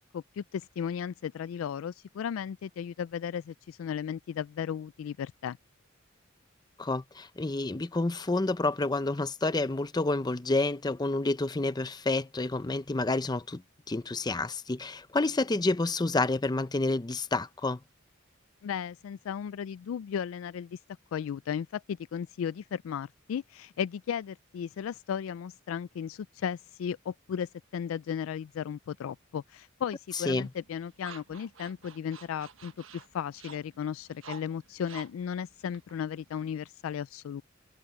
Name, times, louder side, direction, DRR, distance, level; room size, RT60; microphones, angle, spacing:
voice 1, 0.0-5.6 18.6-20.8 21.1-37.4, left 8 dB, 85° left, 0.3 m, -35 dB
voice 2, 6.8-13.6 13.9-17.8 30.3-30.5, left 2 dB, 20° left, 0.6 m, -29 dB
sound 1, 30.2-36.7, right 6 dB, 80° right, 1.3 m, -51 dB
head